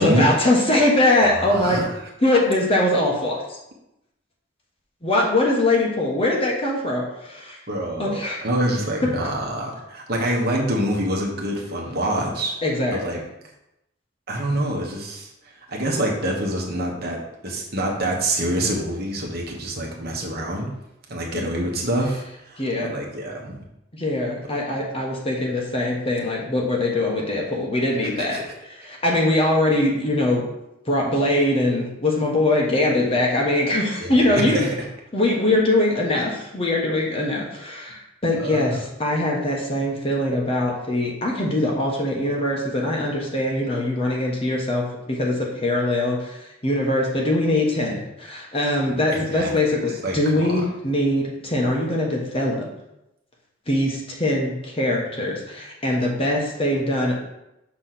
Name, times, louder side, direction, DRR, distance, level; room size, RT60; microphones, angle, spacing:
voice 1, 0.0-1.8 2.2-3.6 5.0-7.6 8.0-8.4 9.0-9.1 12.6-13.2 22.6-22.9 23.9-28.4 28.7-30.4 30.9-34.6 35.1-52.7 53.7-57.1, left 1 dB, 30° left, -2 dB, 1.2 m, -22 dB
voice 2, 1.2-1.9 7.7-12.5 12.9-13.2 14.3-15.3 15.7-20.7 21.1-23.6 28.2-28.5 34.0-34.7 38.4-38.8 48.9-49.5 50.0-50.6, right 1 dB, 55° right, -1 dB, 1.2 m, -26 dB
6.2 x 3.2 x 5.8 m, 0.87 s
head